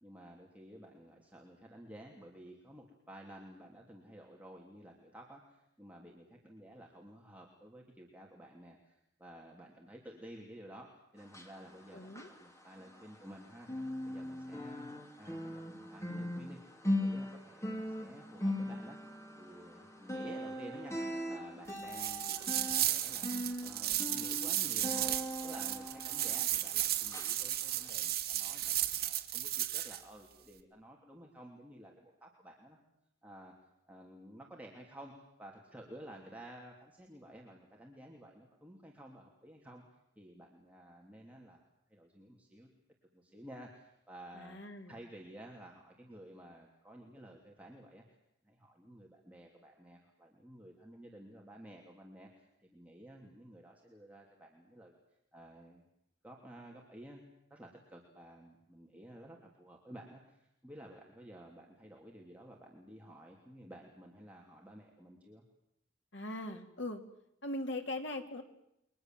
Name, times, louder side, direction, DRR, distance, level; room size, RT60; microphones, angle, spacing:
voice 1, 0.0-16.6 16.8-19.0 19.3-25.2 25.4-32.8 33.2-33.5 33.9-39.8 40.2-41.6 41.9-42.7 43.1-44.6 44.9-48.0 48.4-55.0 55.3-55.8 56.2-57.2 57.5-65.4, right 1 dB, 10° right, -1 dB, 3.0 m, -53 dB
sound 1, 11.2-13.4 13.6-26.8 27.1-27.3 27.8-27.9, left 1 dB, 15° left, 2.9 m, -39 dB
voice 2, 11.9-12.3 44.3-44.9 66.1-67.0 67.4-68.4, left 1 dB, 65° left, 4 dB, 3.1 m, -40 dB
sound 2, 21.9-30.0, right 13 dB, 55° right, 2.3 m, -34 dB
29.5 x 23.5 x 7.7 m, 0.80 s
head